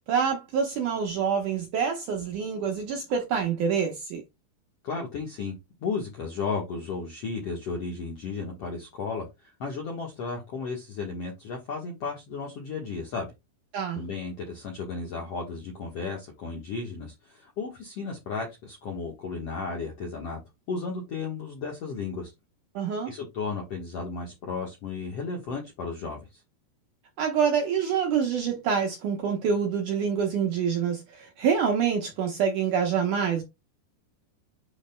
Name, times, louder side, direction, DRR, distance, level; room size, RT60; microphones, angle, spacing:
voice 1, 0.1-4.2 13.7-14.0 22.8-23.1 27.2-33.4, right 7 dB, 70° right, 2.0 m, -26 dB
voice 2, 4.8-13.3 13.9-20.4 20.7-22.3 23.1-26.4, left 4 dB, 65° left, 1.5 m, -34 dB
10.5 x 4.1 x 2.2 m
omnidirectional pair, 4.8 m